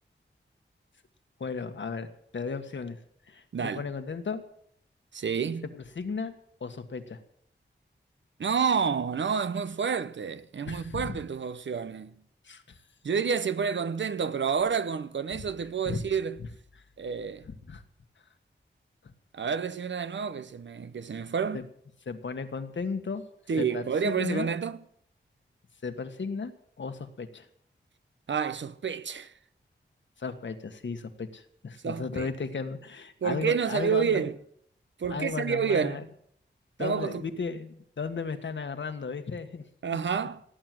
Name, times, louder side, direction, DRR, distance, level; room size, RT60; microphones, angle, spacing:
voice 1, 1.4-3.0 3.3-4.4 5.7-6.3 6.6-7.2 10.7-11.2 12.4-12.8 15.8-16.0 16.4-16.5 17.5-17.8 21.5-21.6 22.0-23.2 23.6-24.5 25.8-26.5 26.8-27.5 30.2-34.2 35.1-36.0 36.8-39.6, left 5 dB, 70° left, 1.5 m, -35 dB
voice 2, 3.5-3.8 5.1-5.7 8.4-12.2 13.0-16.4 17.0-17.5 19.3-21.6 23.5-24.8 28.3-29.3 31.8-32.3 33.2-34.4 35.0-36.0 36.8-37.3 39.8-40.4, right 6 dB, 70° right, 0.8 m, -29 dB
17.5 x 9.0 x 7.7 m
wide cardioid pair, 75°, 20 cm